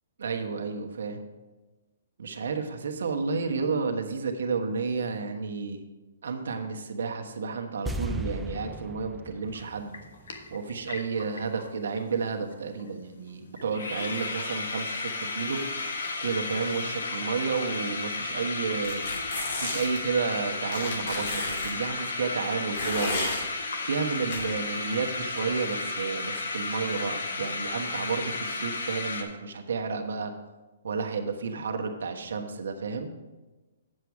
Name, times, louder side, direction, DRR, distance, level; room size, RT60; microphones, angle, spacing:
voice 1, 0.2-1.2 2.2-5.8 6.2-9.9 10.5-15.6 16.2-19.1 19.5-23.3 23.8-30.3 30.8-33.1, right 5 dB, 75° right, 5 dB, 1.2 m, -31 dB
sound 1, 7.9-11.1 11.3-11.4, right 1 dB, 5° right, 0.3 m, -37 dB
sound 2, 9.5-9.6 9.9-11.7 12.0-12.1 12.2-12.5 12.8-12.9 13.3-13.4 13.6-29.2, left 3 dB, 75° left, 1.4 m, -33 dB
sound 3, 18.8-20.0 20.7-21.7 22.7-23.4 24.3-24.4, left 2 dB, 60° left, 2.7 m, -32 dB
8.0 x 7.5 x 4.8 m, 1.2 s
hypercardioid pair, 155°, 0 cm